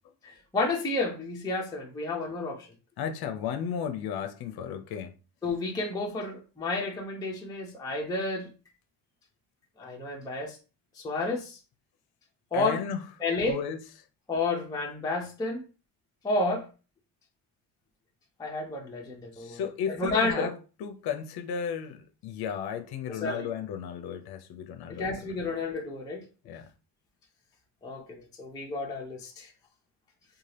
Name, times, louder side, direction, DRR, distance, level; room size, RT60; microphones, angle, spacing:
voice 1, 0.2-2.7 5.4-8.5 9.8-10.6 11.0-11.6 12.5-12.8 13.2-13.6 14.3-15.6 16.2-16.7 18.4-19.6 19.9-20.5 23.1-23.5 24.9-26.2 27.8-28.0 28.4-29.5, left 2 dB, 10° left, 0.5 m, -31 dB
voice 2, 3.0-5.1 12.5-13.1 13.5-13.8 19.3-25.3 26.5-26.7, left 7 dB, 55° left, 0.6 m, -34 dB
2.7 x 2.3 x 3.2 m
cardioid pair, 140°, 45 cm